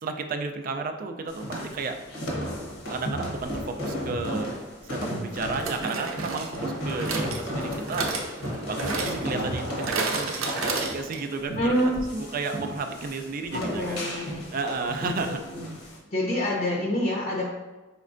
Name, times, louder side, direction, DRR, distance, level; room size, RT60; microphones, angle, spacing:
voice 1, 0.0-2.0 2.9-4.5 4.8-8.1 8.7-14.1 14.5-15.4, right 4 dB, 45° right, 6 dB, 0.3 m, -33 dB
sound 1, 1.3-16.0, equal, 65° left, 1.0 m, -34 dB
sound 2, 4.4-4.5 5.6-11.4 11.7-11.8 12.0-12.1, right 4 dB, 80° right, 0.6 m, -33 dB
voice 2, 11.6-11.9 13.5-14.4 15.0-15.7 16.1-17.4, left 1 dB, 40° left, -3 dB, 0.7 m, -27 dB
5.1 x 3.2 x 2.5 m, 1.2 s
head